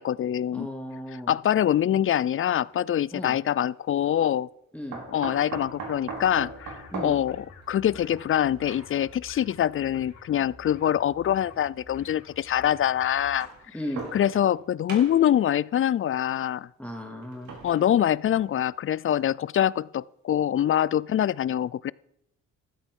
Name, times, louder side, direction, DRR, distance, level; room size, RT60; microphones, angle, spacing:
voice 1, 0.0-0.7 1.3-4.5 5.1-13.5 14.1-16.7 17.6-21.9, left 10 dB, 45° left, 22 dB, 0.5 m, -24 dB
voice 2, 0.5-1.3 3.1-3.4 4.7-5.0 6.9-7.2 13.7-14.1 16.8-17.6, left 1 dB, 5° left, 1 dB, 2.3 m, -35 dB
sound 1, 2.5-2.6 4.9-9.2 10.2-10.3 11.4-11.5 13.2-14.6 14.9-15.4 17.2-18.6 19.1-19.2 19.6-19.7, right 4 dB, 70° right, 5.1 m, -40 dB
sound 2, 6.2-13.3, left 3 dB, 75° left, 5.3 m, -50 dB
15.0 x 13.0 x 5.4 m, 0.78 s
cardioid pair, 90°, 30 cm